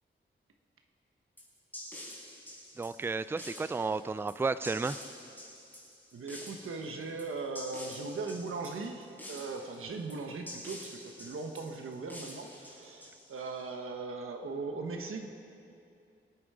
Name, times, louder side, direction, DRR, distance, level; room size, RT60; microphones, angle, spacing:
sound 1, 1.4-13.6, left 1 dB, 10° left, 4.4 m, -47 dB
voice 1, 2.8-5.0, right 4 dB, 10° right, 14 dB, 0.3 m, -32 dB
voice 2, 6.1-15.3, right 3 dB, 85° right, 4 dB, 1.2 m, -39 dB
25.0 x 9.0 x 4.9 m, 2.6 s
wide cardioid pair, 120°, 21 cm